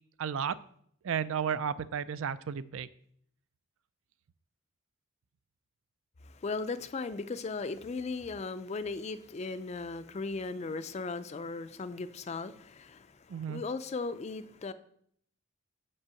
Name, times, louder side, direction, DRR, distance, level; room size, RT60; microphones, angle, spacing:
voice 1, 0.2-0.5 1.0-2.9 13.3-13.6, right 7 dB, 65° right, 16 dB, 0.4 m, -33 dB
voice 2, 6.2-14.7, left 3 dB, 30° left, 12 dB, 0.4 m, -37 dB
6.0 x 5.4 x 7.0 m, 0.66 s
head